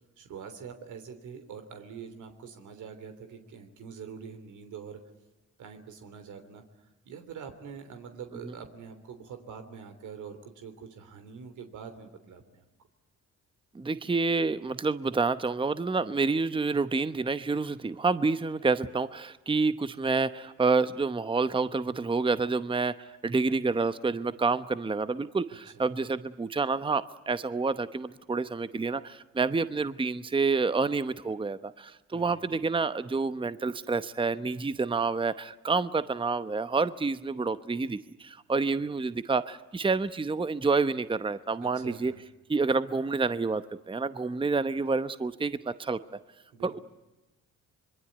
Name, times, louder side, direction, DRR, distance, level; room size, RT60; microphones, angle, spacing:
voice 1, 0.2-5.0 5.6-12.6 25.6-25.8 32.1-32.4 41.6-42.2 46.5-46.8, right 6 dB, 75° right, 7 dB, 3.3 m, -45 dB
voice 2, 13.7-42.1 42.5-46.0 46.6-46.8, right 4 dB, 15° right, 13 dB, 0.9 m, -28 dB
26.0 x 22.5 x 9.4 m, 1.0 s
cardioid pair, 90°, 30 cm